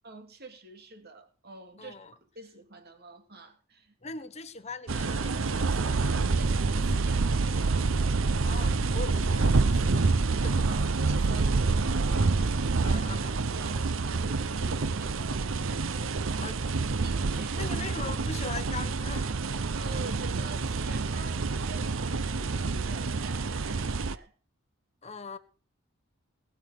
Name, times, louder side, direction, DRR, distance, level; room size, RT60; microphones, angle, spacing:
voice 1, 0.0-2.0 2.3-4.0 6.3-7.9 10.6-13.0 13.3-16.6 16.9-17.8 19.8-24.3, right 2 dB, 50° right, 2.7 m, -46 dB
voice 2, 1.8-2.1 4.0-6.2 8.4-10.7 12.8-13.4 16.4-16.6 17.6-19.3 25.0-25.4, left 4 dB, 30° left, 1.2 m, -41 dB
sound 1, 4.9-24.2, right 3 dB, 65° right, 0.8 m, -27 dB
19.5 x 6.9 x 6.5 m
head